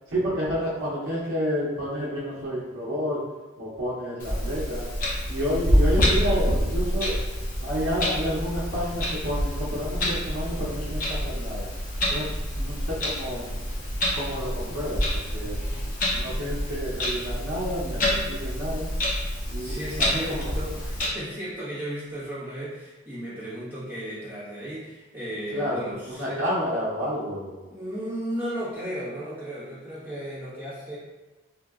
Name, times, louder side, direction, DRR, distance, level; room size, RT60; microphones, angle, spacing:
voice 1, 0.1-3.2 3.6-4.9 5.3-7.2 7.6-11.7 12.1-12.3 12.5-13.5 14.1-15.6 16.1-18.9 19.5-20.4 25.5-27.8, equal, 75° right, -7 dB, 0.8 m, -30 dB
Clock, 4.2-21.1, equal, 40° left, 0.7 m, -27 dB
voice 2, 19.2-26.4 27.7-30.9, equal, 10° right, -11 dB, 1.1 m, -35 dB
3.7 x 2.8 x 2.4 m, 1.1 s
head